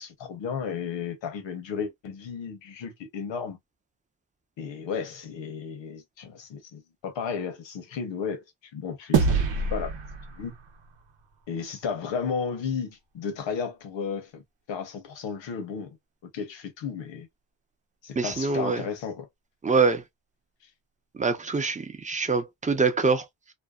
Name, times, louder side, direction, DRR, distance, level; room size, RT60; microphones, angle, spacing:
voice 1, 0.0-3.6 4.6-8.4 8.7-9.4 9.7-9.9 10.3-10.5 11.5-14.4 14.7-16.0 16.3-17.3 18.0-19.3, left 6 dB, 85° left, 0.9 m, -33 dB
sound 1, 9.1-11.7, right 4 dB, 85° right, 0.9 m, -27 dB
voice 2, 18.2-18.8 19.6-20.0 21.2-23.2, right 4 dB, 15° right, 0.6 m, -24 dB
2.6 x 2.1 x 2.3 m
cardioid pair, 65°, 44 cm